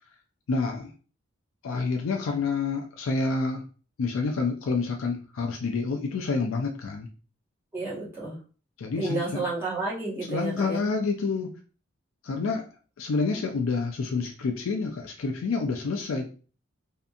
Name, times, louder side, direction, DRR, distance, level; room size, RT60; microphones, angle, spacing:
voice 1, 0.5-0.9 1.6-3.6 4.0-7.1 8.8-9.4 10.3-11.5 12.2-12.7 13.0-16.3, left 4 dB, 80° left, 2 dB, 0.4 m, -28 dB
voice 2, 7.7-8.4 9.0-10.8, right 3 dB, 10° right, -8 dB, 1.0 m, -31 dB
2.6 x 2.5 x 2.3 m, 0.37 s
head